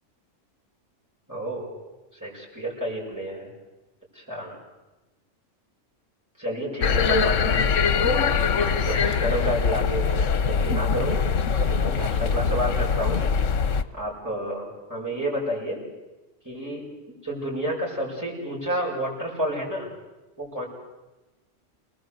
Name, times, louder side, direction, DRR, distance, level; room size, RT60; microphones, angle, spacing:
voice 1, 1.3-1.8 2.1-3.5 4.1-4.6 6.4-7.8 8.1-8.6 8.8-11.2 11.6-13.2 13.9-15.8 16.4-16.9 17.2-19.9 20.4-20.6, equal, 15° right, -5 dB, 7.1 m, -30 dB
sound 1, 6.8-13.8, left 6 dB, 75° left, 1.4 m, -23 dB
29.0 x 20.0 x 8.0 m, 1.1 s
omnidirectional pair, 1.3 m